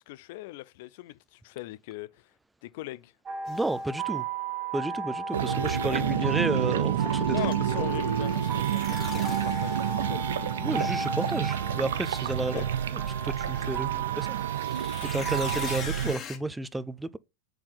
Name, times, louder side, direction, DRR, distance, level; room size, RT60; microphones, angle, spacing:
voice 1, 0.0-2.3 2.6-3.1 7.3-10.5 12.5-12.7, left 17 dB, 55° left, 0.4 m, -40 dB
sound 1, 3.3-15.8, right 4 dB, 25° right, 1.2 m, -35 dB
sound 2, 3.5-3.7 8.2-10.2 10.7-11.3 14.4-16.4, left 7 dB, 30° left, 1.3 m, -42 dB
voice 2, 3.5-4.2 4.7-7.3 7.7-7.8 10.6-12.5 13.2-14.3 15.0-17.2, right 2 dB, 5° right, 0.4 m, -32 dB
sound 3, 5.3-16.2, right 10 dB, 70° right, 0.4 m, -29 dB
6.5 x 4.3 x 3.8 m
figure-of-eight pair, 95°, 0 cm